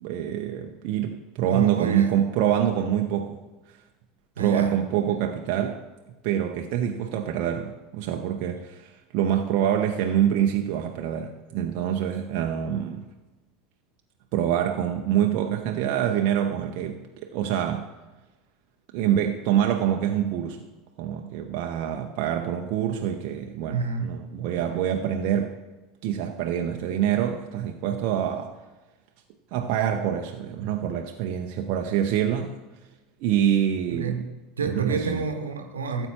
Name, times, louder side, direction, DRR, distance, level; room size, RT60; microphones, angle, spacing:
voice 1, 0.0-3.4 3.7-3.8 4.4-5.8 6.2-13.0 14.3-17.9 18.9-20.6 21.0-25.5 26.0-28.5 29.5-32.6 33.2-34.2 34.6-35.2, right 10 dB, 50° right, 3 dB, 0.7 m, -26 dB
voice 2, 1.5-2.1 4.4-4.8 23.7-24.3 33.9-36.1, right 5 dB, 75° right, 6 dB, 1.1 m, -29 dB
16.5 x 7.9 x 3.0 m, 1.1 s
figure-of-eight pair, 75°, 0 cm